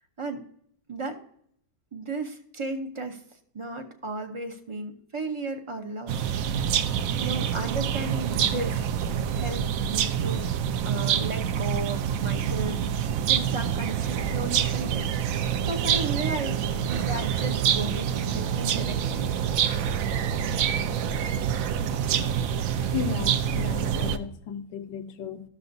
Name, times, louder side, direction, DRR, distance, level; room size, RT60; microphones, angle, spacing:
voice 1, 0.9-1.2 1.9-3.2 3.5-6.3 7.2-8.9 9.3-10.5 10.8-15.1 15.7-19.4, right 3 dB, 40° right, 0.4 m, -34 dB
sound 1, 6.1-24.2, right 8 dB, 70° right, 0.8 m, -26 dB
voice 2, 22.8-25.4, left 8 dB, 85° left, 1.4 m, -35 dB
13.5 x 6.8 x 2.6 m
omnidirectional pair, 1.9 m